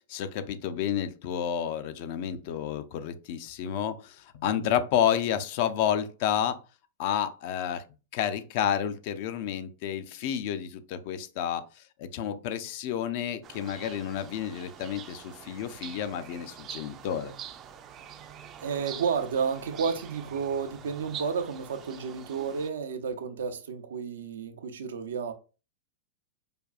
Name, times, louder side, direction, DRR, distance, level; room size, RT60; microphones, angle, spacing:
voice 1, 0.1-6.6 7.0-7.8 8.1-17.3, left 9 dB, 55° left, 0.4 m, -30 dB
sound 1, 13.4-22.7, right 9 dB, 30° right, 0.4 m, -45 dB
voice 2, 18.6-25.3, right 6 dB, 80° right, 0.5 m, -31 dB
4.9 x 2.3 x 2.4 m
hypercardioid pair, 115°, 0 cm